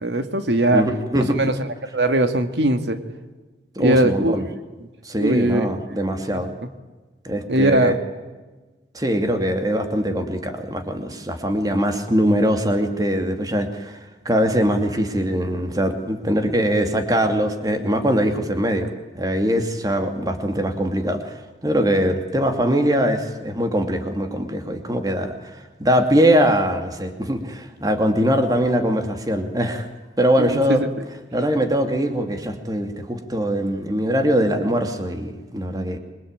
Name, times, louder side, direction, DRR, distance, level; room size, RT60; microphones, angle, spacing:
voice 1, 0.0-0.8 1.3-1.5 1.9-3.0 3.8-4.4 5.2-5.7 6.3-6.4 7.5-8.0 30.4-30.9, right 1 dB, 85° right, 8 dB, 2.1 m, -20 dB
voice 2, 0.7-1.4 3.8-4.4 5.0-6.5 7.2-8.0 8.9-14.0 14.2-29.9 30.2-30.9 31.3-36.0, equal, 20° right, 6 dB, 2.6 m, -22 dB
26.5 x 23.0 x 9.0 m, 1.2 s
head